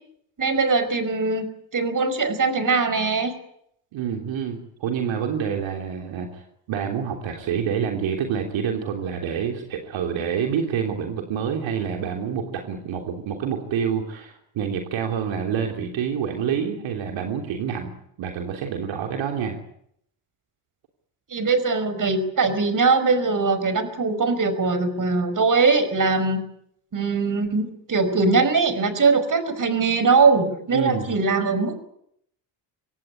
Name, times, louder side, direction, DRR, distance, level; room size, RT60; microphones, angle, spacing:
voice 1, 0.4-1.5 1.7-3.3 21.3-26.4 26.9-31.9, right 4 dB, 40° right, 12 dB, 5.5 m, -21 dB
voice 2, 3.9-6.4 6.7-17.9 18.2-19.6 30.7-31.1, right 7 dB, 65° right, 3 dB, 3.4 m, -27 dB
25.5 x 18.0 x 9.8 m, 0.73 s
supercardioid pair, 65°, 48 cm